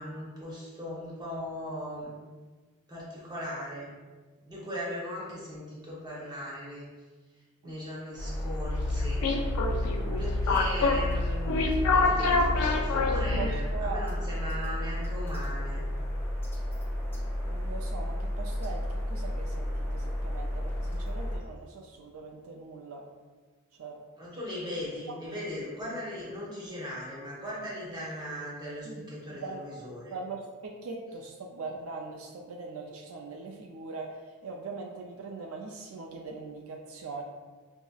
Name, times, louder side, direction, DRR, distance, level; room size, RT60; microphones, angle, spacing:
voice 1, 0.0-2.1 2.9-3.9 4.4-6.8 7.6-9.3 10.2-11.7 11.9-15.9 24.2-30.1, equal, 20° right, -6 dB, 0.9 m, -38 dB
sound 1, 8.2-21.4, equal, 10° left, 0.5 m, -32 dB
sound 2, 8.6-13.7, left 3 dB, 90° left, 0.4 m, -27 dB
voice 2, 13.3-14.2 17.4-23.0 23.8-24.0 25.1-25.2 28.8-29.6 30.1-37.2, right 4 dB, 70° right, 0 dB, 0.4 m, -41 dB
5.3 x 2.0 x 2.3 m, 1.4 s
head